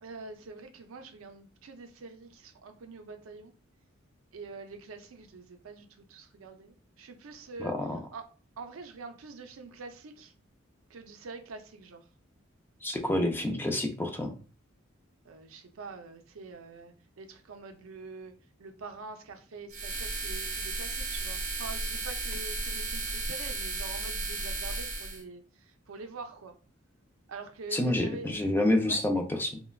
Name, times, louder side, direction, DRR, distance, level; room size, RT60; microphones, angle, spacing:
voice 1, 0.0-3.5 4.3-7.7 8.1-8.3 8.6-10.3 10.9-12.1 13.1-13.2 15.2-18.3 18.6-26.5 27.3-28.4 28.8-29.0, right 4 dB, 85° right, 6 dB, 0.5 m, -45 dB
voice 2, 7.6-8.0 12.8-14.4 27.7-29.6, left 1 dB, 10° left, 4 dB, 0.3 m, -28 dB
sound 1, 19.7-25.2, right 3 dB, 40° right, 0.6 m, -34 dB
3.1 x 2.1 x 2.2 m, 0.37 s
head